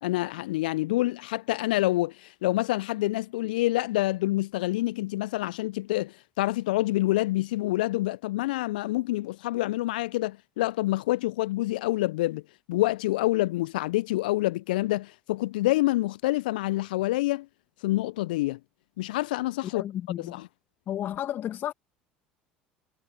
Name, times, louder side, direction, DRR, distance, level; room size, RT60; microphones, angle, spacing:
voice 1, 0.0-12.4 12.7-17.5 17.8-18.6 19.0-19.8 20.2-20.5, left 18 dB, 75° left, 0.4 m, -27 dB
voice 2, 19.7-20.4 20.9-21.7, left 11 dB, 50° left, 1.8 m, -32 dB
figure-of-eight pair, 65°, 5 cm